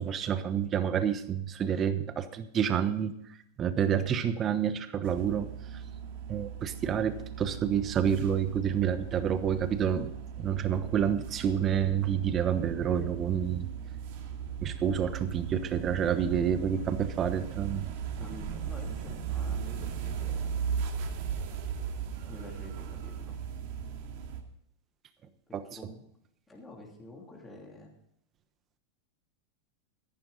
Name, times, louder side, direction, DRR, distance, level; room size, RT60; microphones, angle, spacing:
voice 1, 0.0-3.1 3.6-5.5 6.3-10.1 10.4-13.7 14.6-17.9 25.5-25.6, right 8 dB, 25° right, 10 dB, 1.1 m, -28 dB
sound 1, 5.0-24.4, right 7 dB, 60° right, 2.2 m, -37 dB
voice 2, 18.2-20.7 22.2-23.4 25.5-26.0 26.5-27.9, left 1 dB, 10° left, -1 dB, 2.9 m, -48 dB
13.5 x 11.5 x 4.1 m, 0.75 s
supercardioid pair, 145°, 0 cm